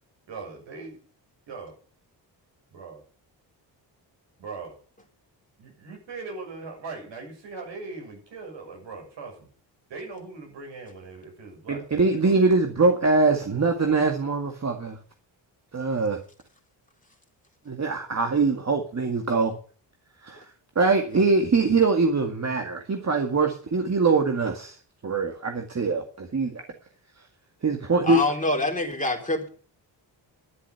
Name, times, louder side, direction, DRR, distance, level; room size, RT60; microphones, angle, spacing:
voice 1, 0.3-1.0 1.5-1.7 2.7-3.0 4.4-4.7 5.6-9.5 9.9-12.4, right 4 dB, 75° right, 2 dB, 6.9 m, -40 dB
voice 2, 11.7-15.0 15.7-16.2 17.7-19.5 20.2-20.4 20.8-24.8 25.0-26.6 27.6-28.2, right 3 dB, 35° right, 4 dB, 2.1 m, -23 dB
voice 3, 28.0-29.5, left 2 dB, 20° left, 2 dB, 3.7 m, -25 dB
11.5 x 10.0 x 7.0 m, 0.42 s
cardioid pair, 85°, 43 cm